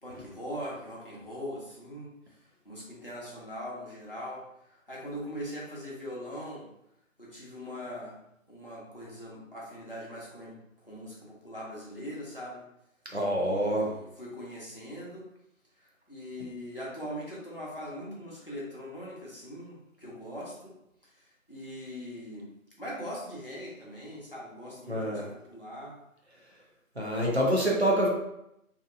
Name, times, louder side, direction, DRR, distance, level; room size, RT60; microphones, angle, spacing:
voice 1, 0.0-2.4 2.6-6.7 7.2-8.2 8.5-12.6 13.4-15.3 15.8-20.7 21.0-22.5 22.8-26.0, equal, 40° left, -6 dB, 0.6 m, -41 dB
voice 2, 13.1-13.9 24.9-25.3 27.0-28.1, right 1 dB, 50° right, -2 dB, 0.5 m, -26 dB
2.7 x 2.1 x 2.5 m, 0.82 s
figure-of-eight pair, 180°, 42 cm